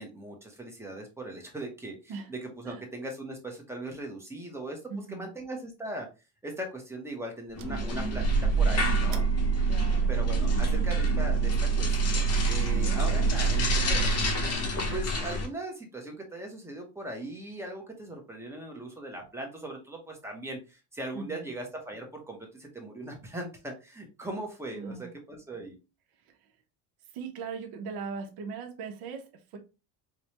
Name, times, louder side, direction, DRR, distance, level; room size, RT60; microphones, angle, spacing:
voice 1, 0.0-4.8 5.1-6.1 6.4-8.3 8.6-9.3 10.1-25.8, right 1 dB, 5° right, 0.9 m, -39 dB
voice 2, 4.9-5.3 9.7-10.1 10.5-10.7 12.7-13.1 21.1-21.5 24.7-25.1 27.1-29.6, right 5 dB, 55° right, 1.0 m, -39 dB
sound 1, 7.5-15.5, left 2 dB, 35° left, 0.9 m, -31 dB
sound 2, 7.6-15.0, right 6 dB, 40° right, 0.5 m, -27 dB
4.8 x 2.3 x 2.9 m
cardioid pair, 150°, 43 cm